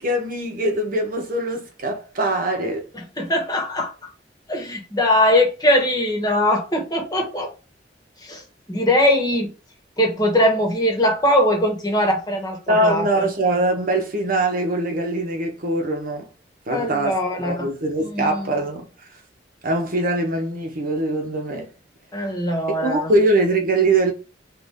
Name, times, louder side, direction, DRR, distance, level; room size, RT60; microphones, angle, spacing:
voice 1, 0.0-2.9 12.7-16.3 16.7-18.9 19.6-21.7 22.8-24.1, right 2 dB, 50° right, 1.0 m, -22 dB
voice 2, 3.0-3.9 4.5-7.5 8.2-8.4 8.7-9.5 10.0-13.1 16.7-17.7 18.0-18.5 22.1-23.1, left 1 dB, 20° left, 1.3 m, -21 dB
3.7 x 3.3 x 3.6 m
head